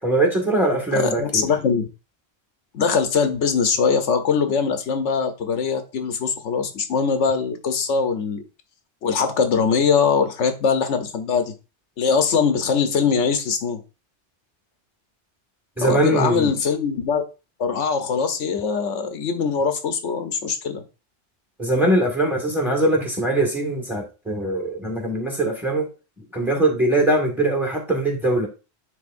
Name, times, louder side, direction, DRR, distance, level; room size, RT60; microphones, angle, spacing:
voice 1, 0.0-1.5 15.8-16.5 21.6-25.9 26.3-28.5, right 1 dB, ahead, 2 dB, 1.6 m, -21 dB
voice 2, 0.9-1.9 2.7-8.4 9.0-11.5 12.0-13.8 15.8-17.2 17.6-20.8, left 5 dB, 90° left, 7 dB, 1.1 m, -22 dB
9.7 x 3.8 x 2.5 m, 0.31 s
omnidirectional pair, 1.2 m